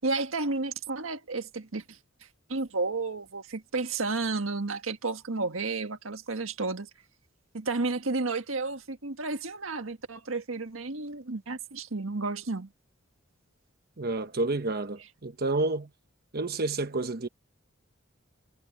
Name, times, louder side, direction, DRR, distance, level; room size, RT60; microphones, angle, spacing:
voice 1, 0.0-2.0 2.5-6.9 7.5-12.7, right 3 dB, 85° right, 1.6 m, -32 dB
voice 2, 14.0-15.9 16.3-17.3, right 2 dB, 50° right, 1.1 m, -29 dB
head